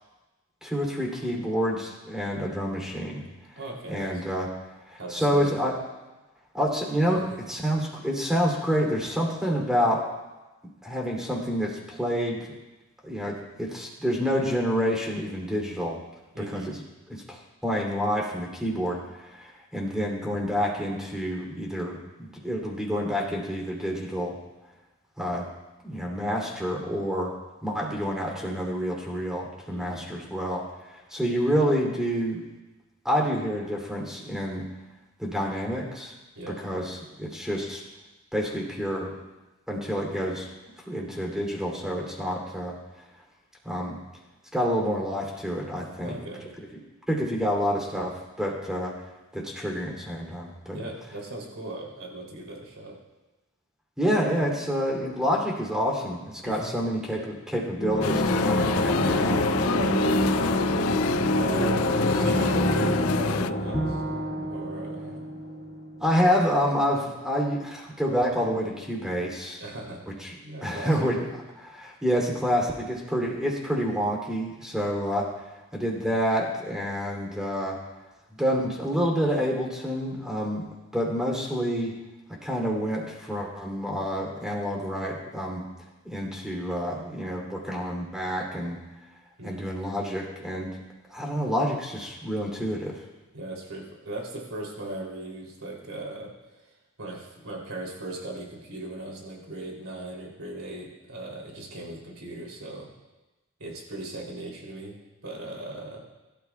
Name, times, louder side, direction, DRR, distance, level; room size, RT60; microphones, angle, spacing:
voice 1, 0.6-3.2 3.9-4.5 4.9-5.8 6.5-10.0 10.8-12.5 13.0-16.0 16.4-16.8 17.1-24.4 25.2-25.4 25.8-27.3 27.6-32.4 33.0-34.7 35.2-36.1 36.6-37.8 38.3-39.1 39.7-40.5 40.9-42.7 43.6-44.0 44.5-46.1 47.1-48.9 49.3-50.8 54.0-59.5 66.0-69.6 70.2-75.3 75.7-77.8 78.3-80.6 80.9-81.9 82.4-85.7 86.0-88.8 89.4-90.7 91.1-93.0, equal, 5° right, -2 dB, 3.0 m, -28 dB
voice 2, 3.6-4.2 5.0-5.5 7.3-7.4 16.3-16.7 29.7-30.0 36.3-36.6 46.0-46.5 50.7-53.0 56.4-56.7 59.6-60.8 61.3-64.0 64.5-65.2 69.6-70.0 70.4-71.1 89.4-89.6 93.3-96.3 96.6-96.7 97.0-102.9 103.6-105.0 105.2-106.0, right 2 dB, 80° right, -2 dB, 3.2 m, -38 dB
sound 1, 57.8-65.4, left 1 dB, 55° left, 1.9 m, -25 dB
sound 2, 58.0-63.5, left 8 dB, 80° left, 0.3 m, -30 dB
Bowed string instrument, 63.7-67.0, right 1 dB, 55° right, 1.7 m, -35 dB
22.5 x 12.5 x 2.4 m, 1.1 s
head